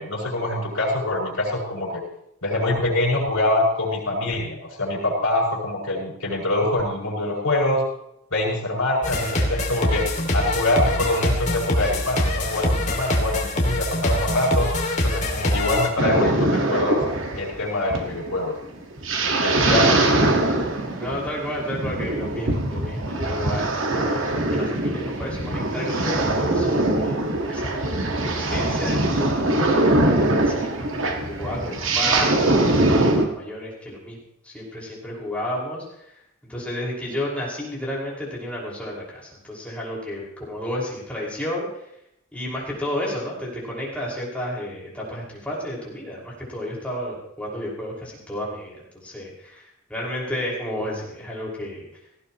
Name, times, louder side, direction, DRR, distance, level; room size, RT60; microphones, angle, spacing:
voice 1, 0.0-2.0 2.4-7.8 8.3-10.1 10.3-14.7 15.0-17.0 17.3-18.5 19.4-20.0, left 1 dB, 80° left, -2 dB, 6.7 m, -24 dB
sound 1, 9.0-15.9, left 1 dB, 35° left, 2.7 m, -24 dB
sound 2, 16.0-33.2, right 2 dB, 60° right, 1.9 m, -22 dB
voice 2, 19.6-20.0 20.5-27.8 28.3-34.2 34.4-36.1 36.5-41.7 42.3-51.9, left 1 dB, 5° left, -5 dB, 5.7 m, -32 dB
18.5 x 16.5 x 3.2 m, 0.78 s
head